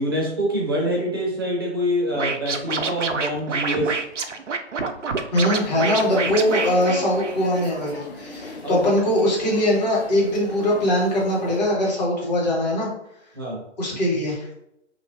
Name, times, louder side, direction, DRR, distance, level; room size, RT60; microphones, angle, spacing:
voice 1, 0.0-4.0 8.6-8.8 13.3-13.6, equal, 20° right, -3 dB, 0.5 m, -25 dB
Scratching (performance technique), 2.1-7.6, right 4 dB, 85° right, 0.5 m, -27 dB
voice 2, 5.3-12.9 13.8-14.5, left 1 dB, 35° left, -4 dB, 1.2 m, -21 dB
sound 1, 5.4-11.6, left 3 dB, 60° left, 0.7 m, -37 dB
2.9 x 2.4 x 2.5 m, 0.80 s
figure-of-eight pair, 140°, 36 cm